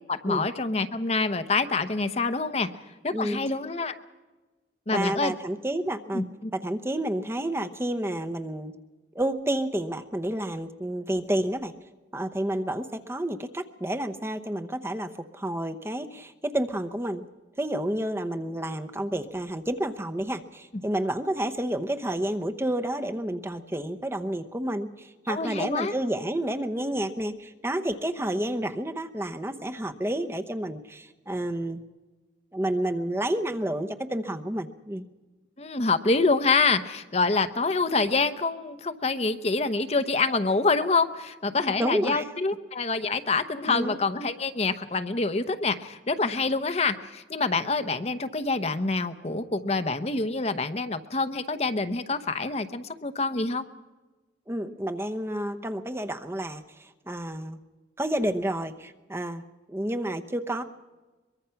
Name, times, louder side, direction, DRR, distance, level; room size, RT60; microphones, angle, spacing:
voice 1, 0.1-2.7 3.0-3.9 4.9-5.3 6.1-6.2 25.3-25.9 35.6-53.6, left 3 dB, 35° left, 10 dB, 0.9 m, -26 dB
voice 2, 4.9-6.2 6.5-8.7 9.1-11.7 12.1-17.2 17.6-31.8 32.5-35.1 41.8-42.3 43.7-44.0 54.5-57.6 58.0-59.4 59.7-60.6, right 1 dB, 15° right, 7 dB, 0.9 m, -30 dB
23.0 x 22.5 x 5.8 m, 1.2 s
head